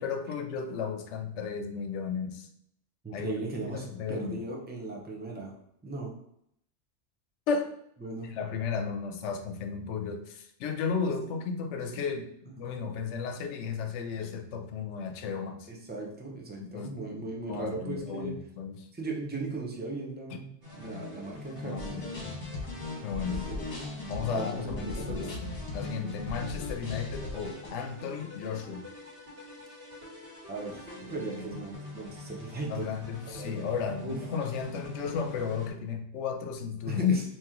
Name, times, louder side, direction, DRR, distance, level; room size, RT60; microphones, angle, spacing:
voice 1, 0.0-2.5 3.1-4.4 7.5-7.7 8.2-12.3 12.6-15.7 16.6-18.9 20.3-20.4 21.6-22.1 23.0-23.5 24.1-28.8 32.6-37.2, left 6 dB, 75° left, 6 dB, 0.9 m, -34 dB
voice 2, 3.0-5.5 5.8-6.1 8.0-8.3 12.7-12.8 15.7-18.4 18.9-20.5 20.7-22.2 23.5-23.6 24.3-25.3 26.0-26.2 30.5-32.9 33.3-33.7 34.0-34.2 36.9-37.2, right 3 dB, 15° right, 0 dB, 0.4 m, -37 dB
sound 1, 20.6-35.7, left 2 dB, 55° right, 1.7 m, -45 dB
sound 2, 21.8-27.7, left 3 dB, 40° left, 1.1 m, -38 dB
sound 3, 30.7-35.5, equal, 15° left, 1.3 m, -50 dB
2.9 x 2.9 x 3.6 m, 0.73 s
omnidirectional pair, 1.2 m